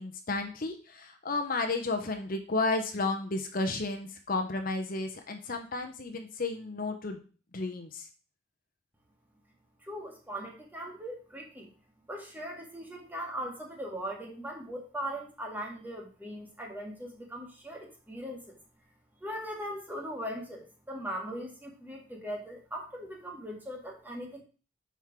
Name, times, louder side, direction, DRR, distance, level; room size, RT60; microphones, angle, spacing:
voice 1, 0.0-7.2 7.5-8.1, left 3 dB, 50° left, 5 dB, 0.9 m, -32 dB
voice 2, 9.8-11.7 12.1-18.6 19.2-24.4, equal, 10° right, -1 dB, 1.7 m, -39 dB
5.5 x 4.7 x 5.9 m, 0.37 s
head